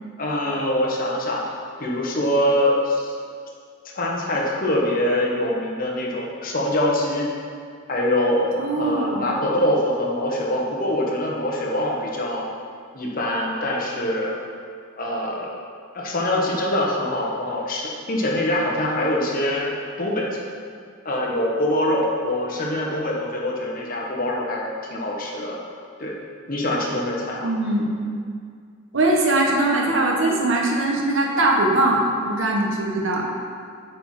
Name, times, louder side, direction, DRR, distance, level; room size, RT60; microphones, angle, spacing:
voice 1, 0.2-1.4 1.8-3.1 3.9-7.3 7.9-12.4 12.9-14.3 15.0-15.5 15.9-19.7 20.0-20.3 21.0-25.6 26.0-26.1 26.5-27.5, left 1 dB, 45° left, -3 dB, 1.1 m, -24 dB
voice 2, 8.6-9.3 27.4-27.8 28.9-33.3, right 2 dB, 65° right, -1 dB, 1.1 m, -21 dB
7.7 x 4.3 x 4.8 m, 2.2 s
head